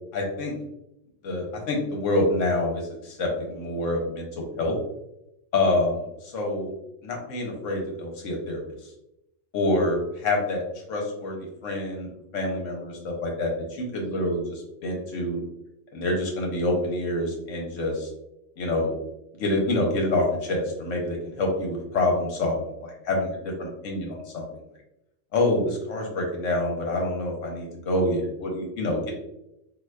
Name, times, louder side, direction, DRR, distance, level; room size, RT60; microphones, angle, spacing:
voice 1, 0.1-0.5 1.2-4.7 5.5-6.7 7.0-8.6 9.5-10.0 10.2-10.6 10.9-15.4 15.9-18.1 18.6-18.9 19.3-24.4 25.3-29.1, left 2 dB, 70° left, 1 dB, 1.2 m, -27 dB
3.8 x 2.7 x 2.2 m, 0.85 s
omnidirectional pair, 1.4 m